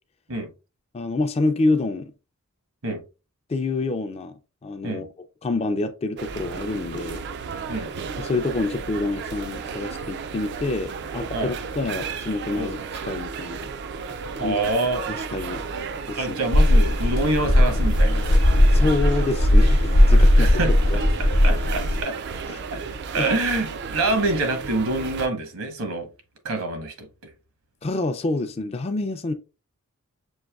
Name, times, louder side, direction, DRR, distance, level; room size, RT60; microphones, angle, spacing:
voice 1, 0.9-2.1 3.5-5.1 5.4-7.2 8.2-12.8 13.0-13.7 14.4-14.6 15.3-15.7 16.1-16.4 18.7-20.6 20.9-21.0 22.5-22.6 23.2-23.3 27.8-29.3, left 2 dB, 30° left, 0.3 m, -27 dB
sound 1, 6.2-25.3, right 5 dB, 50° right, 0.3 m, -33 dB
voice 2, 14.4-15.0 16.1-18.2 20.4-20.7 21.2-22.1 22.7-22.8 23.1-26.1 26.4-27.1, right 2 dB, 70° right, 1.0 m, -26 dB
sound 2, 16.5-22.0, left 1 dB, 65° left, 0.7 m, -17 dB
6.3 x 2.6 x 2.3 m
head